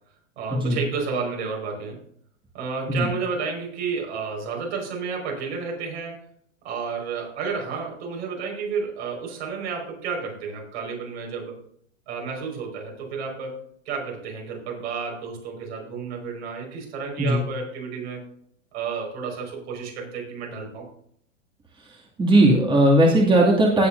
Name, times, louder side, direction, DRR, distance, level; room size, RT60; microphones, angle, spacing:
voice 1, 0.4-2.0 2.5-6.2 6.6-11.6 12.1-13.6 13.9-18.2 18.7-20.9, right 5 dB, 60° right, 0 dB, 5.2 m, -31 dB
voice 2, 22.2-23.9, right 1 dB, 15° right, -2 dB, 2.3 m, -18 dB
17.0 x 8.4 x 2.6 m, 0.66 s
hypercardioid pair, 100°, 38 cm